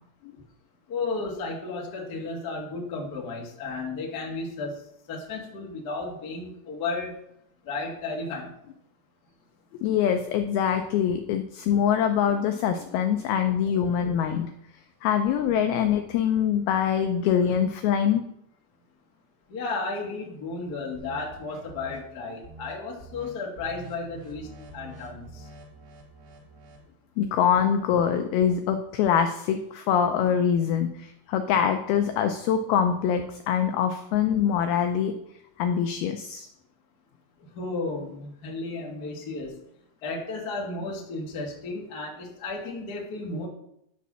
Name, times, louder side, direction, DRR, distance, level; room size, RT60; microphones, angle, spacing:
voice 1, 0.9-4.8 5.1-7.2 7.6-8.5 19.5-25.5 37.5-39.5 40.0-43.5, left 3 dB, 70° left, -2 dB, 0.9 m, -33 dB
voice 2, 9.8-14.5 15.0-18.3 27.2-35.1 35.6-36.5, left 8 dB, 85° left, 7 dB, 2.2 m, -24 dB
sound 1, 20.9-22.0 22.4-22.7 23.0-23.3 23.6-26.9, right 2 dB, 70° right, 3.3 m, -46 dB
10.0 x 4.2 x 6.1 m, 0.75 s
omnidirectional pair, 5.0 m